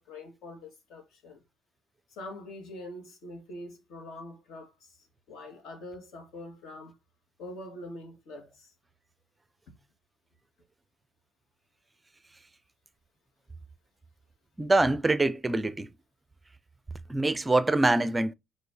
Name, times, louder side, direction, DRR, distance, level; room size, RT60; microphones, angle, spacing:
voice 1, 0.0-1.4 2.1-5.0 5.3-7.0 7.4-8.7 9.7-9.8, left 1 dB, 65° left, 2.7 m, -44 dB
voice 2, 14.6-15.9 17.1-18.3, right 2 dB, 10° right, 0.5 m, -24 dB
4.9 x 4.3 x 4.9 m
cardioid pair, 150°, 0 cm